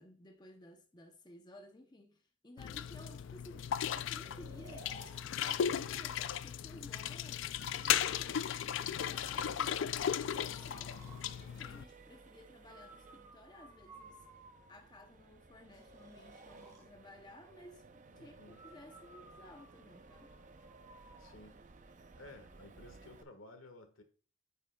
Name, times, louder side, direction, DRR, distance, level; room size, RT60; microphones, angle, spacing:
voice 1, 0.0-11.0 11.5-14.2 14.7-20.3, left 1 dB, 20° left, 0.7 m, -56 dB
sound 1, 2.6-11.8, left 9 dB, 65° left, 0.3 m, -36 dB
Breathing, 4.2-5.9 7.3-8.9 9.5-11.3 12.7-14.9 15.7-16.9 18.5-21.4, right 1 dB, 20° right, 3.0 m, -58 dB
Accelerating revving vroom, 8.6-23.2, right 3 dB, 40° right, 0.6 m, -59 dB
voice 2, 18.1-18.6 21.2-21.6 22.2-24.0, left 2 dB, 80° left, 1.6 m, -55 dB
8.5 x 7.7 x 2.3 m
head